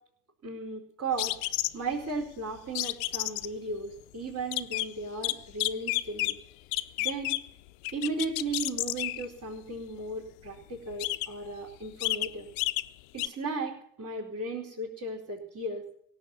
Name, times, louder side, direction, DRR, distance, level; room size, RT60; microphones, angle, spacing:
voice 1, 0.4-1.4 1.7-6.4 7.0-7.3 7.9-12.5 13.1-15.8, right 3 dB, 40° right, -5 dB, 4.9 m, -35 dB
sound 1, 1.2-1.9 2.8-3.5 4.4-4.9 5.2-6.4 6.7-7.5 7.8-9.3 10.5-10.6 10.9-11.5 11.8-12.3 12.6-12.9 13.2-13.3, left 20 dB, 75° left, 0.7 m, -30 dB
17.0 x 7.9 x 10.0 m, 0.67 s
hypercardioid pair, 60°, 41 cm